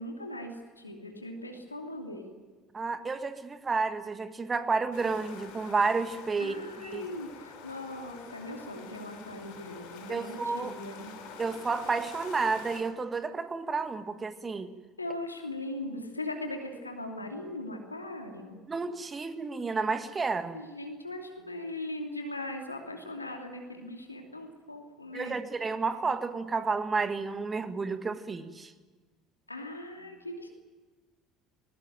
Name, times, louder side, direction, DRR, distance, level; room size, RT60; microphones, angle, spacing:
voice 1, 0.0-2.3 6.4-11.1 15.0-18.6 20.5-25.4 29.5-30.5, left 1 dB, 85° left, 3 dB, 2.8 m, -39 dB
voice 2, 2.7-7.1 10.1-10.7 11.4-14.7 18.7-20.6 25.1-28.7, right 4 dB, 25° right, 9 dB, 1.8 m, -31 dB
sound 1, 4.9-12.8, left 5 dB, 60° left, 6.0 m, -47 dB
20.0 x 20.0 x 9.3 m, 1.3 s
figure-of-eight pair, 65°, 0 cm